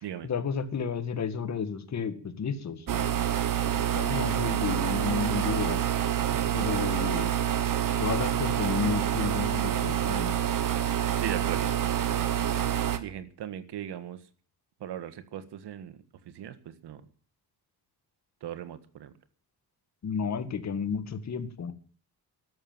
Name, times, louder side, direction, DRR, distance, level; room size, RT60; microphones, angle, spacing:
voice 1, 0.2-3.2 3.7-5.8 6.5-7.4 8.0-10.4 20.0-21.7, left 6 dB, 45° left, 10 dB, 1.8 m, -32 dB
sound 1, 2.9-13.0, right 10 dB, 55° right, 1.5 m, -27 dB
voice 2, 11.2-11.7 13.0-14.3 14.8-17.1 18.4-19.1, right 10 dB, 80° right, 11 dB, 1.7 m, -39 dB
13.5 x 11.5 x 7.4 m, 0.42 s
cardioid pair, 155°, 40 cm